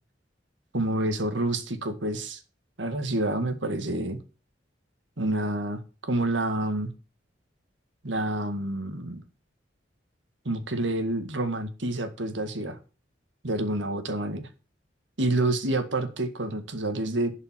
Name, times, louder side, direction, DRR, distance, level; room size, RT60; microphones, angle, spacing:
voice 1, 0.7-2.4 2.8-4.2 5.2-6.9 8.0-9.2 10.5-12.8 13.4-14.5 15.2-17.3, right 1 dB, 80° right, 9 dB, 1.8 m, -28 dB
11.5 x 5.5 x 7.5 m, 0.34 s
head